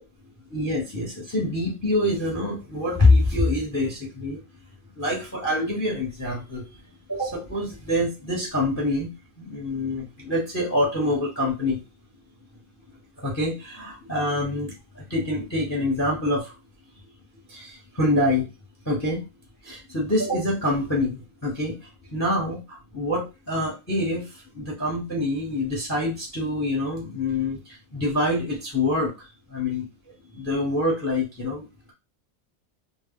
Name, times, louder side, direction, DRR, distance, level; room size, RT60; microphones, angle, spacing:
voice 1, 0.5-4.4 4.9-6.6 7.1-9.1 9.4-11.8 13.2-16.5 17.5-18.5 18.8-19.2 19.6-21.7 22.1-29.1 29.5-29.9 30.3-31.6, left 1 dB, 15° left, -2 dB, 0.7 m, -25 dB
2.1 x 2.0 x 3.6 m, 0.26 s
omnidirectional pair, 1.1 m